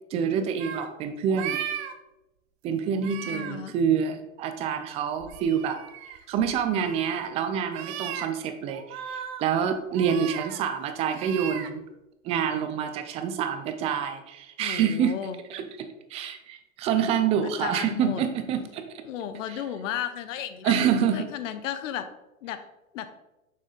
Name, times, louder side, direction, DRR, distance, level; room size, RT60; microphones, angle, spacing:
voice 1, 0.1-1.6 2.6-5.8 6.3-11.8 12.2-15.2 15.5-18.8 19.5-19.6 20.6-21.3, right 7 dB, 15° right, 8 dB, 0.3 m, -27 dB
sound 1, 0.6-0.9 1.3-1.9 2.9-3.5 5.1-7.3 7.7-8.3 8.7-9.4 9.9-10.6 11.0-11.7, right 9 dB, 50° right, 0.9 m, -37 dB
voice 2, 3.2-3.7 14.6-15.4 17.4-18.2 19.0-20.7 21.1-22.0 22.4-22.6 22.9-23.1, left 9 dB, 65° left, 10 dB, 1.0 m, -34 dB
6.7 x 6.2 x 3.9 m, 0.96 s
hypercardioid pair, 130°, 41 cm